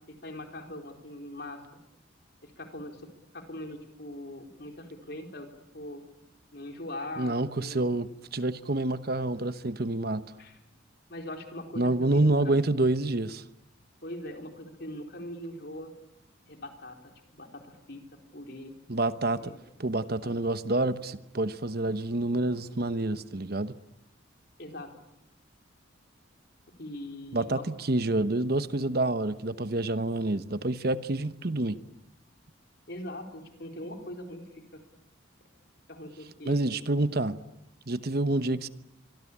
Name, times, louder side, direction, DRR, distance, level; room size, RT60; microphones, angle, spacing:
voice 1, 0.1-1.8 2.4-3.0 3.3-5.5 5.7-6.0 6.5-7.9 10.4-10.6 11.1-12.6 14.0-15.9 16.5-18.0 18.3-18.7 19.3-19.6 20.2-20.3 24.6-24.9 26.7-27.6 32.9-34.8 35.9-36.7, left 1 dB, 50° left, 4 dB, 4.3 m, -41 dB
voice 2, 7.2-10.2 11.8-13.4 18.9-19.5 19.8-23.7 27.3-31.8 36.4-37.4 37.9-38.7, right 2 dB, 50° right, 12 dB, 1.0 m, -28 dB
25.5 x 24.0 x 8.7 m, 0.84 s
head